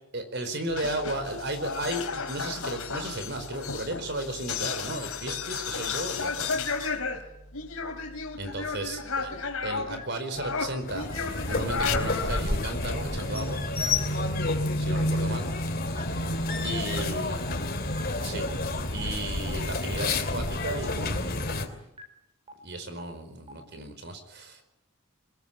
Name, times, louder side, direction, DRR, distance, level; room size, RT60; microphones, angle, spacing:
voice 1, 0.1-6.6 8.4-11.1 11.4-13.6 14.8-15.5 16.6-17.4 18.2-18.5 18.9-21.8 22.6-24.6, right 1 dB, 50° right, 9 dB, 4.7 m, -34 dB
sound 1, 0.7-10.0 10.3-12.5, left 5 dB, 80° left, 3.6 m, -33 dB
sound 2, 8.5-8.6 9.0-9.1 9.5-9.6 10.0-10.1 10.5-10.6 11.0-11.1 11.5-11.6 12.0-12.1 12.5-12.6 13.0-13.1 13.5-13.6 14.0-14.1 14.5-14.6 15.0-15.1 15.5-15.6 16.0-16.1 16.5-16.6 17.0-17.1 17.5-17.6 18.0-18.1 18.5-18.6 19.0-19.1 19.5-19.6 20.0-20.1 20.5-20.6 21.0-21.1 21.5-21.6 22.0-22.1 22.5-22.6 23.0-23.1 23.5-23.6, right 2 dB, 25° right, 4.3 m, -44 dB
sound 3, 10.8-21.7, left 2 dB, 45° left, 3.0 m, -29 dB
23.0 x 21.5 x 8.9 m, 0.84 s
head